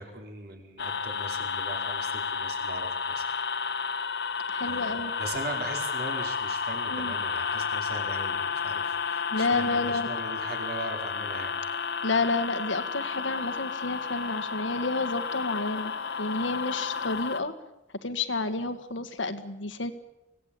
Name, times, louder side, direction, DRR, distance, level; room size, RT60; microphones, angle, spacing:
voice 1, 0.0-3.3 4.7-11.5, right 2 dB, 55° right, 3 dB, 4.7 m, -39 dB
sound 1, 0.8-17.4, left 5 dB, 60° left, 1.4 m, -32 dB
voice 2, 4.5-5.1 6.9-7.1 9.3-10.2 12.0-15.9 16.2-17.5 18.0-19.9, left 3 dB, 90° left, 10 dB, 1.9 m, -30 dB
24.5 x 17.5 x 8.6 m, 0.92 s
head